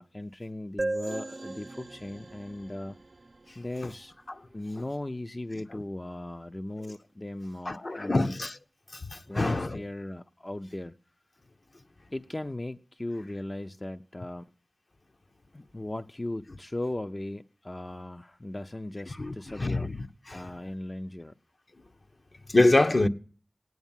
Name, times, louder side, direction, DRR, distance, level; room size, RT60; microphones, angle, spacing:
voice 1, 0.0-3.0 3.6-4.2 4.5-8.3 9.3-11.0 12.1-14.5 15.5-19.8 20.3-21.3, left 1 dB, 35° left, 0.6 m, -37 dB
sound 1, 0.8-4.3, right 2 dB, 65° right, 0.6 m, -37 dB
voice 2, 7.7-8.6 8.9-9.8 19.2-20.0 20.3-20.4 22.5-23.1, left 2 dB, 60° left, 1.0 m, -25 dB
17.5 x 9.5 x 7.3 m
wide cardioid pair, 50°, 0 cm